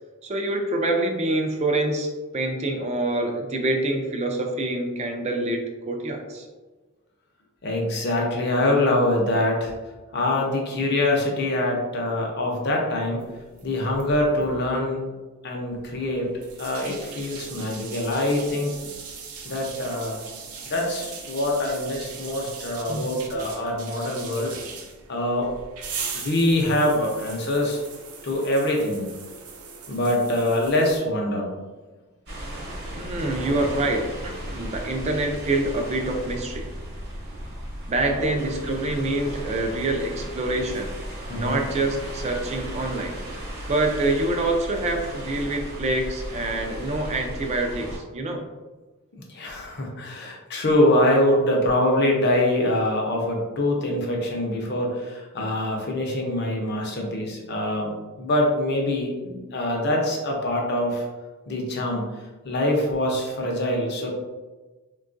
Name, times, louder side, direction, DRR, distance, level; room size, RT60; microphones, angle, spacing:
voice 1, 0.2-6.5 22.9-23.1 32.9-36.7 37.9-40.9 41.3-43.2 43.7-48.4, right 2 dB, 30° right, 3 dB, 0.3 m, -26 dB
voice 2, 7.6-9.7 10.1-13.2 13.6-15.0 15.4-16.3 16.6-18.7 19.4-20.2 20.7-24.6 25.1-25.5 26.1-27.8 28.2-29.1 29.9-31.5 38.1-38.3 41.3-41.6 49.3-61.1 61.5-62.1 62.4-64.1, left 1 dB, 50° left, 0 dB, 0.6 m, -24 dB
sound 1, 13.2-14.7 15.7-31.0, right 5 dB, 80° right, 0.5 m, -40 dB
sound 2, 32.3-48.0, equal, 50° right, 0.9 m, -35 dB
3.6 x 2.3 x 2.5 m, 1.2 s
head